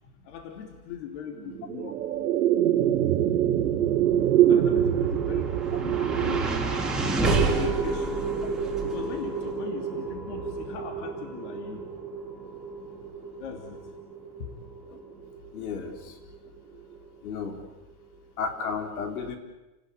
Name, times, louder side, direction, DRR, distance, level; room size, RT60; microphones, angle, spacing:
voice 1, 0.2-2.0 4.5-6.5 7.3-8.3 8.8-11.8 13.4-13.8 14.4-14.5, left 8 dB, 50° left, 4 dB, 3.2 m, -39 dB
sound 1, 1.3-11.9, right 10 dB, 75° right, 2.5 m, -26 dB
sound 2, 4.7-17.0, right 3 dB, ahead, 2.6 m, -31 dB
voice 2, 15.5-16.2 17.2-17.6 18.4-19.4, left 5 dB, 75° left, 6 dB, 4.2 m, -33 dB
30.0 x 19.5 x 8.5 m, 1.0 s
supercardioid pair, 180°, 44 cm